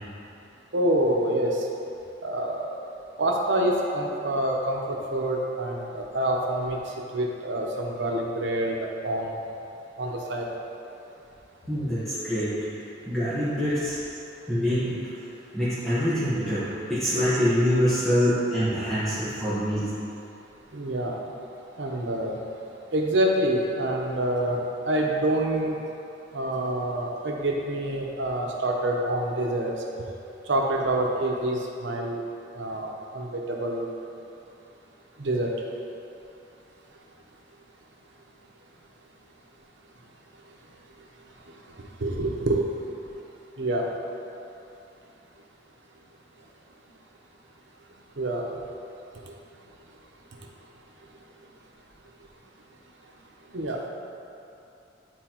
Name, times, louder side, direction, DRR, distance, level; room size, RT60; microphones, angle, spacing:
voice 1, 0.7-1.6 2.2-2.7 3.2-6.8 7.1-8.8 9.0-9.3 10.0-10.5 20.7-21.2 21.8-22.4 22.9-24.6 24.9-25.8 26.3-29.7 30.5-32.2 32.6-33.9 35.2-35.5 42.0-42.6 43.6-43.9 48.2-48.4 53.5-53.9, right 1 dB, 90° right, 0 dB, 0.9 m, -26 dB
voice 2, 11.7-12.5 13.0-14.0 14.5-15.0 15.5-19.9, equal, ahead, -14 dB, 1.4 m, -25 dB
11.0 x 4.4 x 3.0 m, 2.8 s
head